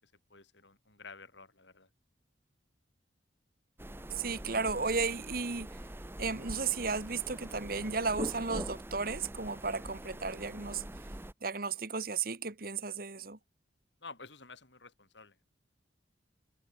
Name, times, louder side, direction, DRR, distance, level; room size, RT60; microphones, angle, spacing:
voice 1, 0.0-1.9 14.0-15.4, left 4 dB, 80° left, 5.4 m, -51 dB
sound 1, 3.8-11.3, right 1 dB, 10° right, 1.0 m, -44 dB
voice 2, 4.1-5.7 6.2-10.8 11.4-13.4, right 4 dB, 50° right, 1.7 m, -34 dB
head